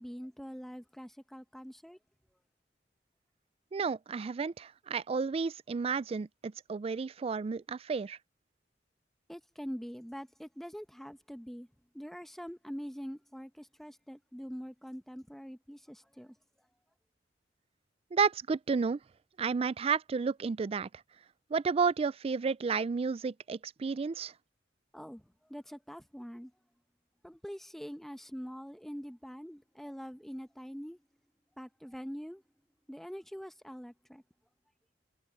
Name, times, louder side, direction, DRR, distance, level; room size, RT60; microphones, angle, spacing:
voice 1, 0.0-2.0 9.3-11.7 11.9-16.3 24.9-25.2 25.5-26.5 27.2-31.0 31.6-32.4 32.9-34.2, equal, ahead, 1.1 m, -44 dB
voice 2, 3.7-8.2 18.1-19.0 19.4-20.9 21.5-24.3, right 5 dB, 35° right, 0.3 m, -31 dB
head